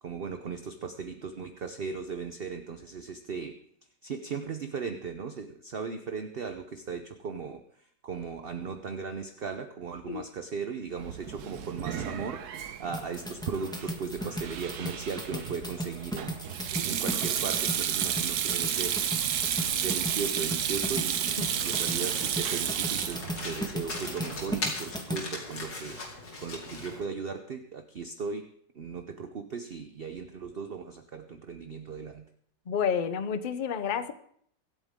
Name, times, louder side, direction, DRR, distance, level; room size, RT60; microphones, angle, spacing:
voice 1, 0.0-3.6 4.0-7.6 8.0-16.4 16.9-19.0 19.7-26.0 26.4-32.2, right 5 dB, 45° right, 7 dB, 0.7 m, -37 dB
Sink (filling or washing), 11.0-24.7, right 9 dB, 65° right, 1.3 m, -32 dB
sound 1, 12.9-25.2, equal, 5° left, 1.3 m, -37 dB
Domestic sounds home sounds, 21.4-27.0, left 2 dB, 75° left, 3.3 m, -39 dB
voice 2, 32.7-34.1, left 7 dB, 45° left, 11 dB, 0.6 m, -30 dB
24.0 x 9.0 x 3.7 m, 0.63 s
omnidirectional pair, 1.9 m